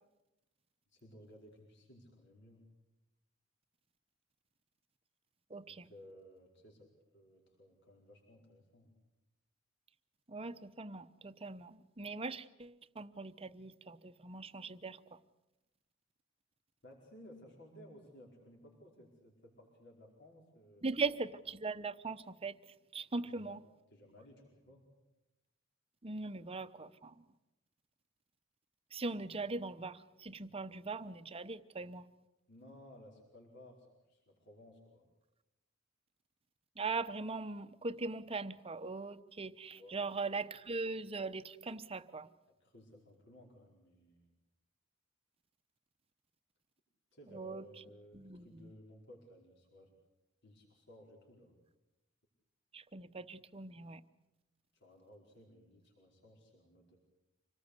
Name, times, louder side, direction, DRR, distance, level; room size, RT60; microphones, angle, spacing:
voice 1, 0.9-2.6 5.7-6.9 7.1-8.9 16.8-20.8 23.2-23.6 23.9-24.8 32.5-35.1 39.8-40.0 42.6-44.3 47.1-49.9 50.4-51.5 54.7-57.0, equal, 60° left, 0 dB, 4.9 m, -58 dB
voice 2, 5.5-5.9 10.3-15.2 20.8-22.6 22.9-23.6 26.0-27.2 28.9-32.1 36.8-42.3 47.3-47.7 48.1-48.7 52.7-54.0, right 3 dB, 30° right, 12 dB, 0.9 m, -40 dB
26.0 x 19.0 x 8.2 m, 0.96 s
head